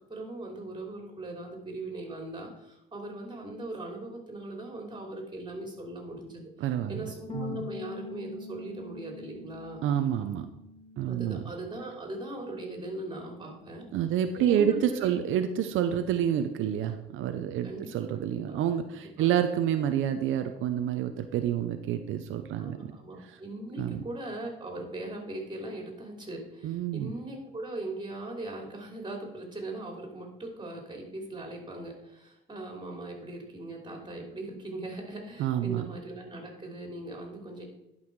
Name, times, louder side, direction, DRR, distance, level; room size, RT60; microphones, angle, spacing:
voice 1, 0.1-6.5 6.9-9.8 11.1-13.9 14.5-15.2 17.6-19.3 22.5-37.7, right 2 dB, 25° right, 2 dB, 3.1 m, -40 dB
voice 2, 6.6-7.7 9.8-10.5 11.0-11.4 13.9-22.9 23.3-23.4 23.8-24.0 26.6-27.1 35.4-35.9, right 10 dB, 85° right, 8 dB, 0.7 m, -28 dB
Bass guitar, 7.3-13.5, left 5 dB, 30° left, 0.9 m, -45 dB
11.0 x 5.6 x 4.6 m, 0.86 s
cardioid pair, 90°, 20 cm